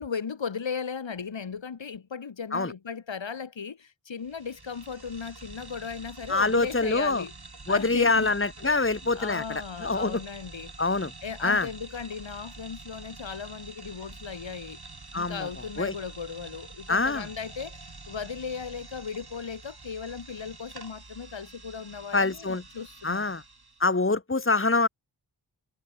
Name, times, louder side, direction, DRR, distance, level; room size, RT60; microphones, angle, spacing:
voice 1, 0.0-7.3 7.7-8.3 8.6-10.7 11.2-14.8 15.1-23.4, left 6 dB, 70° left, 1.7 m, -37 dB
sound 1, 4.2-23.9, right 3 dB, 55° right, 7.4 m, -47 dB
voice 2, 6.3-7.2 7.7-10.2 10.8-11.1 11.4-11.7 15.1-15.5 15.8-15.9 16.9-17.3 22.1-22.6 23.0-23.4 23.8-24.9, left 3 dB, 25° left, 2.2 m, -25 dB
wide cardioid pair, 70°, 46 cm